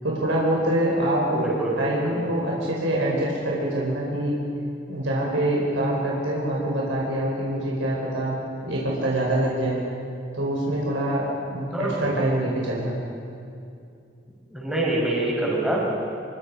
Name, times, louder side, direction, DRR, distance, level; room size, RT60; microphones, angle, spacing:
voice 1, 0.0-4.4 4.9-8.4 8.6-9.8 10.3-13.0, right 1 dB, 85° right, -4 dB, 4.6 m, -25 dB
voice 2, 1.3-2.3 11.7-12.1 14.5-15.8, right 1 dB, 5° right, -5 dB, 5.8 m, -26 dB
27.0 x 22.5 x 5.5 m, 2.5 s
head